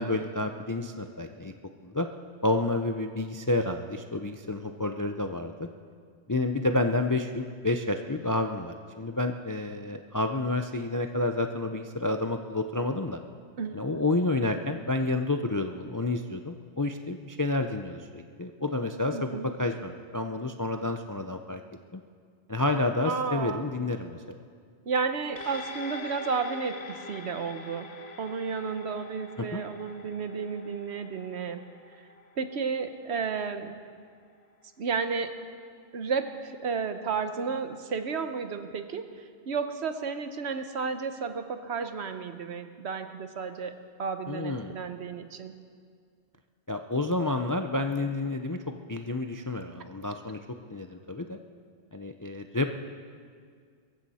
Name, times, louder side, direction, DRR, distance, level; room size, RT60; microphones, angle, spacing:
voice 1, 0.0-1.5 1.8-2.1 2.4-5.7 6.3-13.2 13.7-19.3 19.6-21.6 21.9-22.0 22.5-24.2 29.4-29.6 44.3-44.7 46.7-50.4 50.7-51.4 51.9-52.7, left 2 dB, 30° left, 6 dB, 0.4 m, -29 dB
voice 2, 19.1-19.5 23.0-23.7 24.9-27.9 28.2-31.6 32.4-33.8 34.8-35.3 35.9-39.1 39.5-43.7 44.0-45.5, right 5 dB, 70° right, 9 dB, 1.2 m, -32 dB
sound 1, 25.4-34.0 34.4-34.5, left 2 dB, 65° left, 1.2 m, -45 dB
23.0 x 14.5 x 4.2 m, 2.1 s
omnidirectional pair, 1.2 m